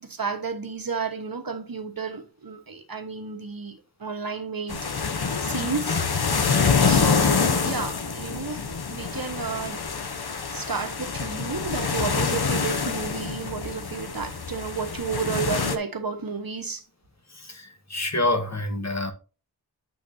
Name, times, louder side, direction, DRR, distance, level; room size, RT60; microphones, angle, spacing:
voice 1, 0.0-4.9 5.4-6.0 6.9-8.6 8.9-9.8 10.5-16.8, right 5 dB, 60° right, 1.2 m, -32 dB
sound 1, 4.7-15.8, left 5 dB, 65° left, 0.8 m, -26 dB
voice 2, 17.3-19.1, left 2 dB, 40° left, 1.4 m, -27 dB
8.5 x 7.2 x 2.6 m
wide cardioid pair, 45°, 40 cm